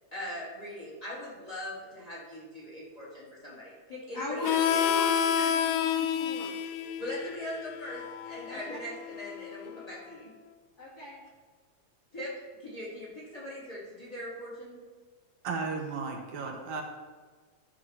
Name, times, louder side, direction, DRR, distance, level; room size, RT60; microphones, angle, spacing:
voice 1, 0.1-4.8 7.0-10.3 12.1-12.3 12.6-14.8, left 1 dB, 10° left, -7 dB, 3.2 m, -40 dB
voice 2, 4.1-6.5 8.5-8.8 10.8-11.2, left 1 dB, 35° left, -7 dB, 3.0 m, -38 dB
Harmonica, 4.4-9.7, left 8 dB, 85° left, 1.9 m, -30 dB
voice 3, 15.4-16.8, right 4 dB, 75° right, 2 dB, 2.2 m, -34 dB
12.5 x 4.6 x 5.9 m, 1.5 s
omnidirectional pair, 3.3 m